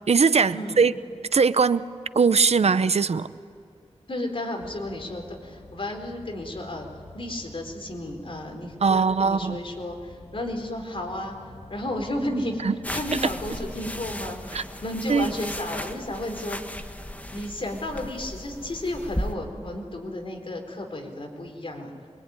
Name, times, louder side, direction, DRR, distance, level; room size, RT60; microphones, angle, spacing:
voice 1, 0.1-0.9 1.3-1.8 2.1-3.3 8.8-9.6 12.6-12.7 14.5-14.6 15.1-15.3, right 5 dB, 70° right, 14 dB, 0.7 m, -20 dB
voice 2, 4.1-11.4 11.7-12.6 12.9-16.6 17.3-21.9, left 1 dB, 55° left, 2 dB, 4.3 m, -33 dB
sound 1, 4.6-14.3, left 2 dB, 90° left, 5.9 m, -48 dB
sound 2, 12.8-19.3, equal, 15° left, 1.6 m, -36 dB
25.5 x 23.0 x 9.7 m, 2.4 s
wide cardioid pair, 90°, 11 cm